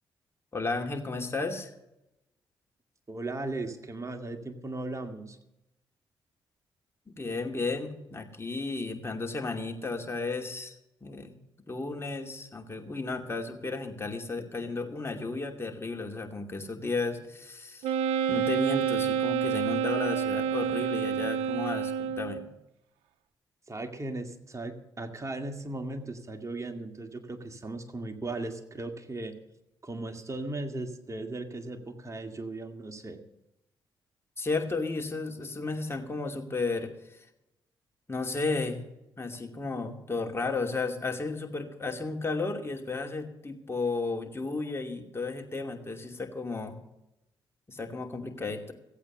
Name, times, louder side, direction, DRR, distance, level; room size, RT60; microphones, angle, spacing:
voice 1, 0.5-1.7 7.1-10.7 11.0-11.3 11.7-17.9 18.3-22.5 34.4-37.2 38.1-38.8 39.2-46.8 47.7-48.7, left 3 dB, 25° left, 3 dB, 2.6 m, -33 dB
voice 2, 3.1-5.4 23.7-29.3 29.8-33.2, right 2 dB, 30° right, 5 dB, 2.1 m, -37 dB
Wind instrument woodwind instrument, 17.8-22.5, right 8 dB, 90° right, 0.6 m, -28 dB
15.5 x 8.5 x 6.7 m, 0.89 s
supercardioid pair, 50°, 10 cm